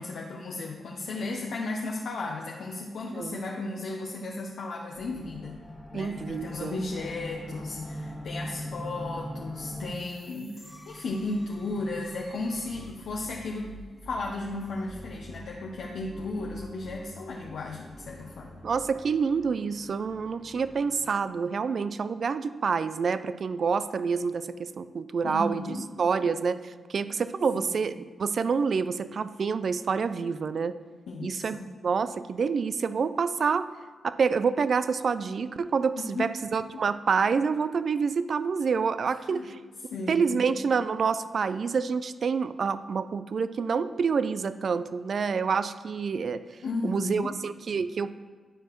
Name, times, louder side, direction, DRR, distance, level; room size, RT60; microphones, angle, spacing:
voice 1, 0.0-5.6 5.9-13.8 14.0-18.6 25.2-25.9 27.6-27.7 31.1-31.7 36.0-36.3 36.7-36.8 39.3-39.5 39.9-40.4 46.6-47.4, left 2 dB, 75° left, -1 dB, 0.7 m, -35 dB
sound 1, 4.9-21.1, equal, 5° right, 1.5 m, -43 dB
voice 2, 5.9-6.8 18.6-30.8 31.2-31.6 31.8-33.7 34.0-39.6 40.1-46.4 46.8-48.2, right 5 dB, 60° right, 13 dB, 0.3 m, -27 dB
11.5 x 4.7 x 3.1 m, 1.5 s
supercardioid pair, 45°, 0 cm